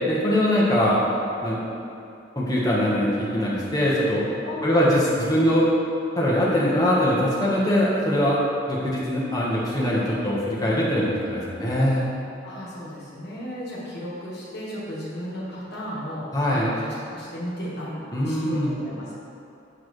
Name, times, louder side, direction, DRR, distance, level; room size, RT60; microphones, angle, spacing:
voice 1, 0.1-1.0 1.4-1.6 2.3-4.2 4.6-5.7 6.1-8.4 8.7-12.1 16.3-16.7 18.1-18.7, equal, 20° left, -6 dB, 1.2 m, -22 dB
voice 2, 4.4-5.1 12.4-19.2, equal, 55° left, -6 dB, 1.6 m, -35 dB
6.5 x 6.5 x 3.2 m, 2.7 s
head